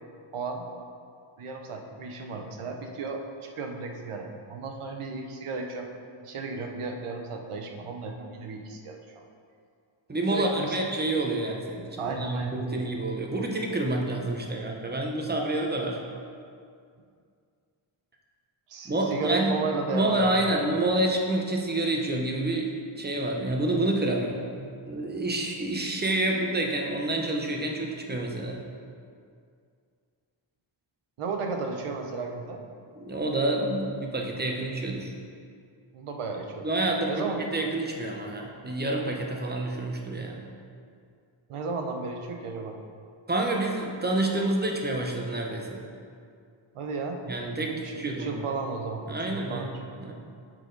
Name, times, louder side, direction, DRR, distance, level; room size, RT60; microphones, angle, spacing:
voice 1, 0.3-0.6 1.4-5.9 6.2-9.2 10.3-10.8 12.0-12.7 18.7-20.5 31.2-32.6 35.9-36.8 37.1-37.4 41.5-42.8 46.7-47.2 47.7-49.7, right 4 dB, 80° right, 3 dB, 1.0 m, -34 dB
voice 2, 10.1-16.0 18.8-19.6 19.9-28.6 32.9-35.1 36.6-37.2 37.5-40.5 43.3-45.9 47.3-48.4 49.1-49.7 50.0-50.2, right 1 dB, 20° right, 1 dB, 0.9 m, -28 dB
7.5 x 6.0 x 3.9 m, 2.3 s
wide cardioid pair, 125°, 50 cm